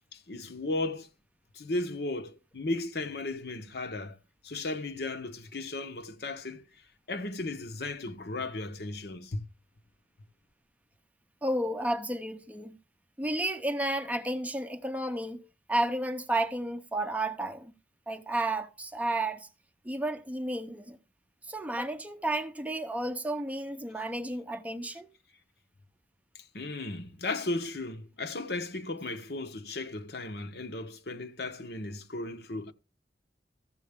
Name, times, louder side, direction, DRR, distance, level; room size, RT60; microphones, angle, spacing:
voice 1, 0.1-1.1 1.5-4.2 4.4-6.6 7.1-9.4 26.3-32.7, left 2 dB, 65° left, 1.1 m, -35 dB
voice 2, 11.4-12.8 13.2-17.7 18.1-19.5 19.8-21.0 21.4-25.1, right 1 dB, 10° right, 0.6 m, -32 dB
14.0 x 7.6 x 3.6 m
head